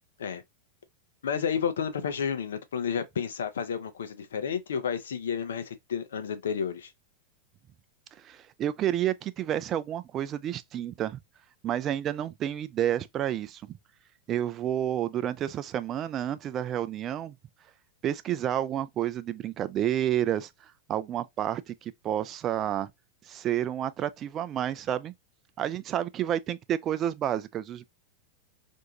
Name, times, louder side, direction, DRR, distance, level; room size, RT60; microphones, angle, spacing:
voice 1, 1.2-6.9, left 7 dB, 65° left, 0.6 m, -31 dB
voice 2, 8.2-11.2 11.6-13.8 14.3-17.3 18.0-22.9 23.3-25.1 25.6-27.8, right 11 dB, 30° right, 0.3 m, -30 dB
2.6 x 2.1 x 2.8 m
figure-of-eight pair, 90°, 0 cm